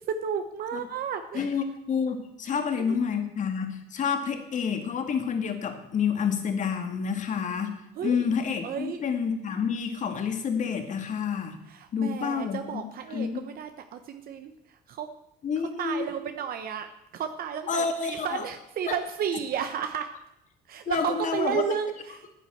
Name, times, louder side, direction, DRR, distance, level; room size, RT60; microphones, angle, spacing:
voice 1, 0.1-1.5 2.4-3.0 8.0-8.3 8.6-9.0 11.7-14.5 14.9-15.1 15.8-20.1 20.7-22.3, right 8 dB, 60° right, 7 dB, 1.0 m, -33 dB
voice 2, 1.3-7.8 8.0-11.6 11.9-12.9 13.1-13.4 15.4-16.1 17.7-18.4 18.9-19.0 20.9-21.6, left 6 dB, 45° left, 6 dB, 2.1 m, -29 dB
9.9 x 9.3 x 7.8 m, 0.84 s
cardioid pair, 110°, 17 cm